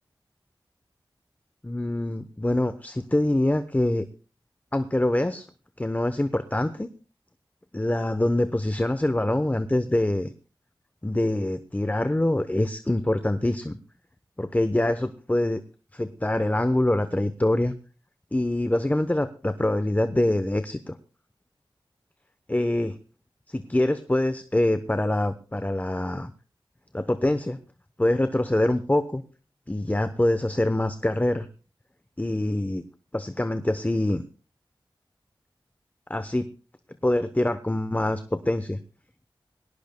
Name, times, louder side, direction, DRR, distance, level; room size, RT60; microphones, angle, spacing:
voice 1, 1.6-4.1 4.7-5.5 5.8-6.9 7.7-10.3 11.0-13.8 14.4-15.6 15.9-17.7 18.3-20.9 22.5-23.0 23.5-26.3 26.9-27.6 28.0-29.2 29.7-31.5 32.2-32.8 33.1-34.2 36.1-36.5 37.0-38.8, left 1 dB, 20° left, 10 dB, 0.8 m, -25 dB
20.5 x 17.5 x 2.2 m, 0.35 s
cardioid pair, 50°, 9 cm